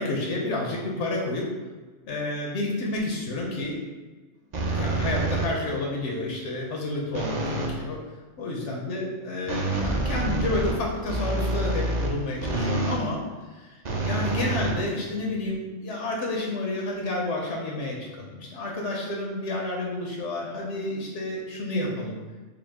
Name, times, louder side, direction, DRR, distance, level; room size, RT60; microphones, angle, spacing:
voice 1, 0.0-1.5 2.0-3.8 4.7-8.0 8.4-13.2 13.5-22.2, left 2 dB, 85° left, -1 dB, 1.0 m, -30 dB
sound 1, 4.5-5.8 7.1-7.8 9.5-13.1 13.8-15.3, right 2 dB, 50° right, 0.6 m, -27 dB
5.1 x 2.0 x 3.5 m, 1.3 s
omnidirectional pair, 1.2 m